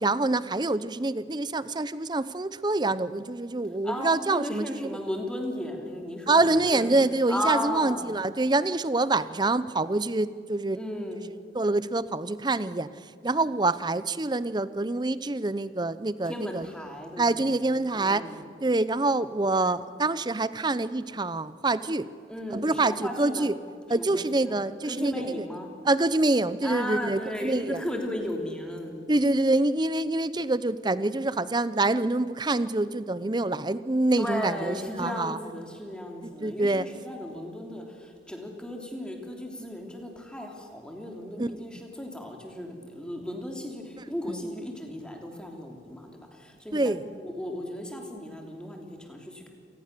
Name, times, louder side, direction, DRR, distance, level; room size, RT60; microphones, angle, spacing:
voice 1, 0.0-5.0 6.3-10.8 11.5-16.7 17.2-22.1 22.5-23.6 23.9-25.6 25.8-27.8 29.1-35.4 36.2-36.9 41.4-41.5 44.0-44.4 46.7-47.2, right 2 dB, 25° right, 16 dB, 0.7 m, -26 dB
voice 2, 3.8-6.9 7.3-8.1 10.7-11.2 16.3-17.4 17.9-18.4 22.3-23.5 24.0-24.4 24.9-25.7 26.6-28.9 34.2-37.8 38.3-46.1 46.4-46.9 47.2-49.5, left 1 dB, 5° left, 2 dB, 3.1 m, -35 dB
27.5 x 19.0 x 6.8 m, 2.4 s
head